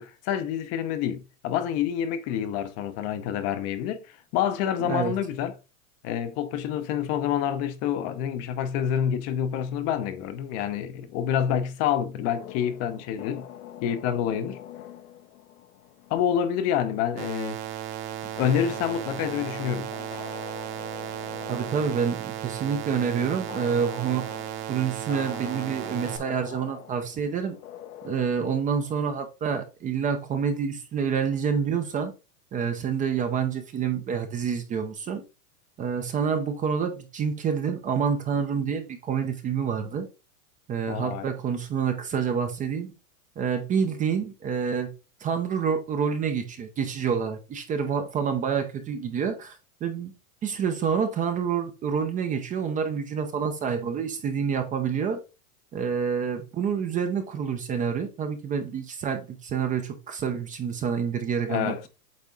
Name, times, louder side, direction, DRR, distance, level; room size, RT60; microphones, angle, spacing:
voice 1, 0.0-5.5 6.0-13.5 13.8-14.6 16.1-17.6 18.4-19.9 40.9-41.3 61.5-61.8, left 9 dB, 35° left, 0.7 m, -27 dB
sound 1, 12.2-29.1, left 10 dB, 85° left, 1.2 m, -45 dB
sound 2, 17.2-26.2, right 12 dB, 50° right, 1.2 m, -35 dB
voice 2, 21.5-24.3 24.7-27.6 28.0-32.1 32.5-35.2 35.8-40.1 40.7-42.9 43.4-44.9 45.2-50.1 50.4-55.2 55.7-61.9, right 6 dB, 20° right, 0.6 m, -28 dB
8.4 x 3.5 x 3.8 m
supercardioid pair, 145°, 43 cm